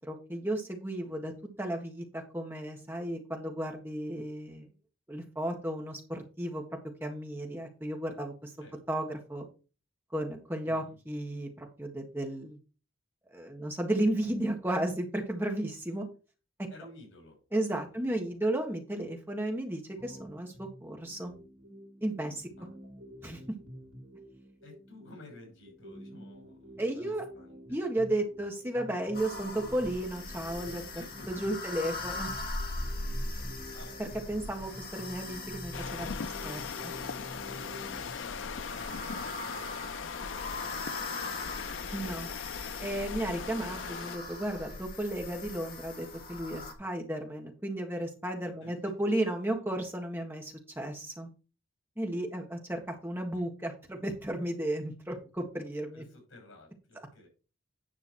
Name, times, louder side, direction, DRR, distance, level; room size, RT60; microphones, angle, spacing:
voice 1, 0.1-1.3 1.6-4.7 5.1-6.6 7.0-8.5 8.9-9.5 10.1-12.6 13.3-16.0 17.5-21.3 22.0-22.5 23.2-23.4 26.8-27.2 27.7-31.0 31.3-32.3 34.0-36.9 41.9-42.3 42.8-51.3 52.0-56.0, right 1 dB, 10° right, 2 dB, 1.7 m, -34 dB
voice 2, 10.7-11.0 16.7-17.4 17.9-18.4 22.6-22.7 24.6-27.8 30.9-31.4 33.2-34.0 34.4-34.6 38.1-42.4 48.6-48.9 55.9-57.3, left 2 dB, 80° left, 1 dB, 5.9 m, -53 dB
sound 1, 20.0-38.1, equal, 65° right, 2.8 m, -48 dB
sound 2, 29.1-46.7, left 2 dB, 45° left, 1.9 m, -40 dB
sound 3, 35.7-44.2, left 6 dB, 65° left, 0.4 m, -40 dB
10.5 x 5.5 x 4.5 m, 0.34 s
head